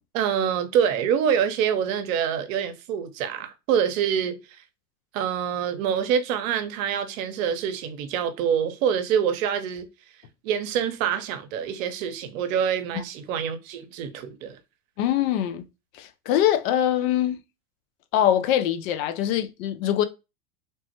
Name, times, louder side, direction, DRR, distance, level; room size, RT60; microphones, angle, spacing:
voice 1, 0.1-4.4 5.1-9.9 10.4-14.6, right 8 dB, 60° right, 0.7 m, -26 dB
voice 2, 15.0-15.6 15.9-17.4 18.1-20.0, left 11 dB, 60° left, 0.6 m, -23 dB
3.3 x 2.1 x 2.8 m
hypercardioid pair, 100°, 46 cm